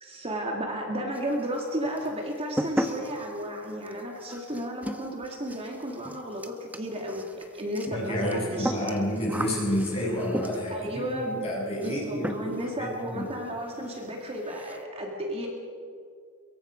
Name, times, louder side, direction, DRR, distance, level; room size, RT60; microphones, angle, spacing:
voice 1, 0.0-9.0 10.7-11.5 11.8-15.5, equal, 25° right, 0 dB, 2.3 m, -33 dB
sound 1, 1.1-1.7 2.0-10.9 11.8-12.0 12.2-12.7 13.0-13.1 13.5-13.6 13.8-14.0 14.3-14.8, equal, 5° right, 1.1 m, -35 dB
voice 2, 7.9-13.2, equal, 30° left, -4 dB, 7.7 m, -30 dB
23.5 x 22.5 x 5.2 m, 2.2 s
head